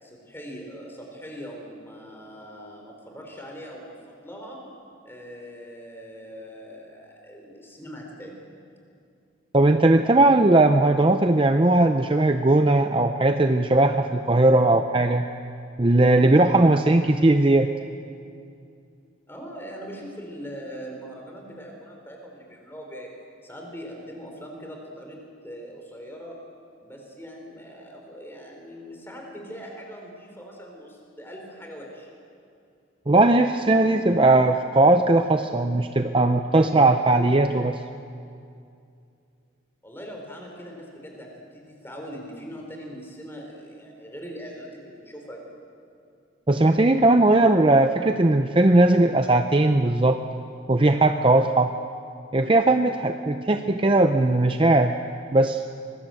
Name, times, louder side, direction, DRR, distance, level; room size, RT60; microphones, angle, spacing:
voice 1, 0.0-4.6 5.0-8.4 19.3-23.1 23.4-26.4 26.8-32.1 39.8-45.5, equal, 10° left, 1 dB, 4.3 m, -41 dB
voice 2, 9.5-15.2 15.8-17.7 33.1-37.8 46.5-50.2 50.7-51.7 52.3-54.9 55.3-55.6, right 2 dB, 25° right, 6 dB, 0.6 m, -18 dB
25.5 x 20.5 x 7.8 m, 2.5 s
head